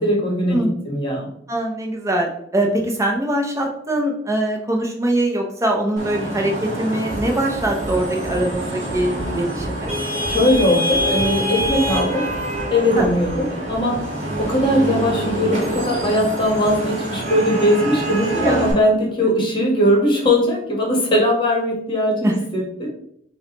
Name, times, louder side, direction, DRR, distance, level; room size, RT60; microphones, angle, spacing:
voice 1, 0.0-1.3 10.3-12.2 12.7-14.0 14.4-22.9, equal, 25° left, -1 dB, 1.1 m, -19 dB
voice 2, 1.5-9.9 13.0-13.1 18.4-18.8 22.2-22.3, right 1 dB, 15° right, 1 dB, 0.6 m, -22 dB
Vehicle horn car horn honking / Traffic noise roadway noise, 6.0-18.7, right 1 dB, 35° right, 1.2 m, -26 dB
sound 1, 7.1-16.0 16.4-16.7 17.1-17.4, equal, 5° left, 1.4 m, -35 dB
5.4 x 2.2 x 2.9 m, 0.68 s
head